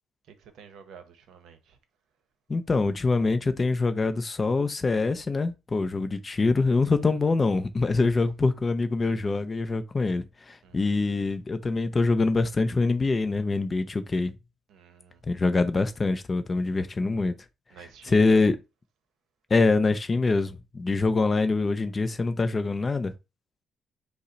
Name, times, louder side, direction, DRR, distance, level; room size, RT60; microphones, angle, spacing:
voice 1, 0.3-1.8 7.0-7.1 10.6-10.9 14.7-15.2 17.7-18.5, right 6 dB, 60° right, 0.8 m, -50 dB
voice 2, 2.5-14.4 15.2-17.4 17.8-18.6 19.5-23.1, left 3 dB, 20° left, 0.4 m, -24 dB
5.4 x 2.0 x 3.9 m
cardioid pair, 170°, 0 cm